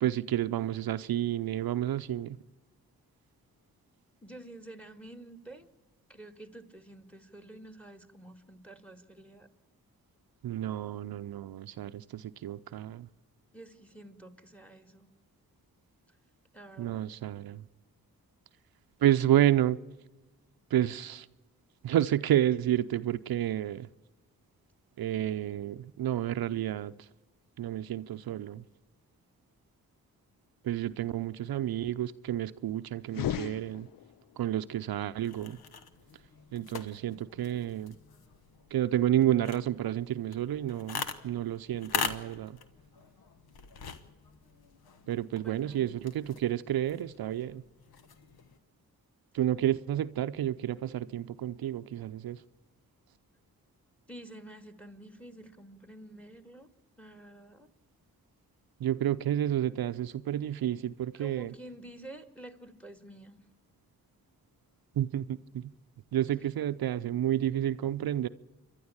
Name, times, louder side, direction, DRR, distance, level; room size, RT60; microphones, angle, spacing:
voice 1, 0.0-2.4 10.4-13.1 16.8-17.6 19.0-19.8 20.7-21.3 21.8-23.9 25.0-26.9 27.6-28.6 30.6-33.9 34.4-35.6 36.5-37.9 38.7-42.6 45.1-47.6 49.3-52.4 58.8-61.5 65.0-65.7 66.1-68.3, right 12 dB, 75° right, 0.6 m, -30 dB
voice 2, 4.2-5.7 6.1-9.5 13.5-15.1 16.1-16.2 16.5-17.0 45.4-46.1 54.1-56.7 57.0-57.7 61.1-63.4, right 1 dB, 5° left, 2.3 m, -49 dB
sound 1, 33.1-34.4, left 11 dB, 65° left, 0.6 m, -35 dB
sound 2, 35.2-48.6, left 6 dB, 80° left, 1.3 m, -42 dB
28.0 x 11.5 x 8.7 m
cardioid pair, 50°, 36 cm